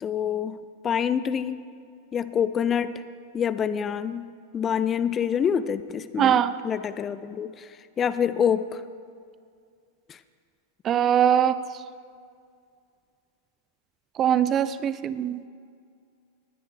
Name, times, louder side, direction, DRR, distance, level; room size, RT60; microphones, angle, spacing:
voice 1, 0.0-0.6 0.8-1.6 2.1-3.0 3.3-4.3 4.5-7.7 8.0-8.8, left 8 dB, 25° left, 14 dB, 0.5 m, -26 dB
voice 2, 6.2-6.5 10.8-11.6 14.2-15.5, right 9 dB, 30° right, 14 dB, 0.4 m, -22 dB
19.5 x 10.0 x 4.7 m, 2.2 s
figure-of-eight pair, 90°, 0 cm